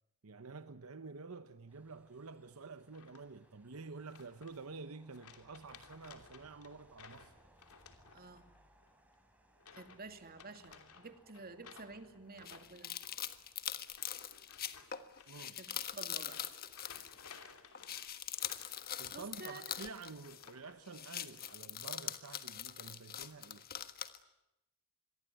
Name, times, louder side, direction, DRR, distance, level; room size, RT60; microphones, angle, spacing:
voice 1, 0.2-7.3 15.3-15.6 19.0-23.7, right 4 dB, 70° right, 0.9 m, -49 dB
sound 1, 1.7-14.1, right 1 dB, 5° right, 4.7 m, -68 dB
sound 2, 2.9-3.5 4.1-4.8 5.1-8.6 8.8-9.1 9.6-10.0 10.3-20.8 21.1-21.6, left 6 dB, 80° left, 2.9 m, -58 dB
voice 2, 8.1-8.4 9.7-12.9 15.6-16.4 19.1-19.6, right 3 dB, 45° right, 2.5 m, -51 dB
sound 3, 12.4-17.5 17.7-20.6 20.9-24.2, left 10 dB, 45° left, 1.5 m, -43 dB
27.0 x 22.5 x 9.2 m
head